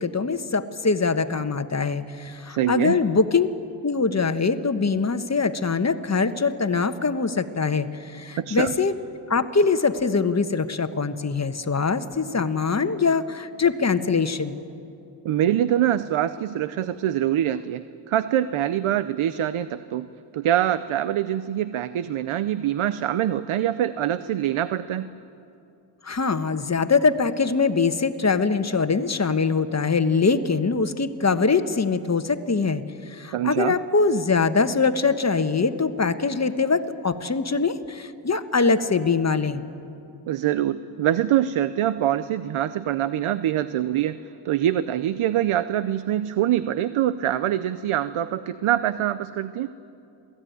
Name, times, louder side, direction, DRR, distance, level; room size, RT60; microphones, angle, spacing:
voice 1, 0.0-3.5 3.8-8.9 9.3-14.5 26.0-39.6, left 4 dB, 35° left, 9 dB, 1.3 m, -23 dB
voice 2, 2.5-3.0 8.4-8.8 15.2-25.1 33.3-33.8 40.3-49.7, right 11 dB, 85° right, 13 dB, 0.7 m, -24 dB
28.0 x 17.5 x 9.3 m, 2.7 s
cardioid pair, 60°, 48 cm